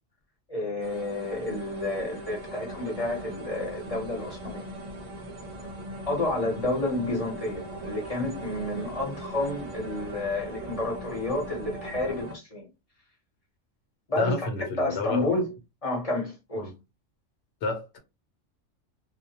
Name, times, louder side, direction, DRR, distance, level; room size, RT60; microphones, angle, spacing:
voice 1, 0.5-4.6 6.1-12.7 14.1-14.4 14.8-15.5 15.8-16.7, left 2 dB, 30° left, 0.9 m, -30 dB
sound 1, 0.8-12.3, right 1 dB, 70° right, 0.3 m, -40 dB
voice 2, 14.2-15.3 16.6-16.7 17.6-18.0, left 3 dB, 65° left, 0.9 m, -30 dB
2.3 x 2.1 x 2.8 m
omnidirectional pair, 1.3 m